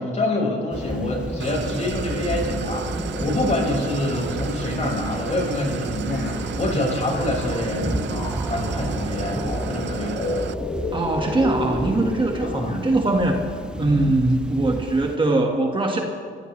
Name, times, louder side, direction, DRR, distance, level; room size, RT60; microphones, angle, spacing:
voice 1, 0.0-9.4 9.7-10.3 12.4-12.7, left 1 dB, 35° left, -1 dB, 5.5 m, -26 dB
Thunder / Rain, 0.7-15.2, right 1 dB, 5° right, 0.7 m, -32 dB
Idling, 1.4-10.5, right 10 dB, 65° right, 0.5 m, -33 dB
sound 1, 2.5-14.1, left 2 dB, 55° left, 4.3 m, -33 dB
voice 2, 10.9-13.4 13.8-16.0, right 2 dB, 25° right, 2 dB, 1.6 m, -21 dB
24.5 x 16.0 x 3.3 m, 2.1 s
cardioid pair, 90°, 20 cm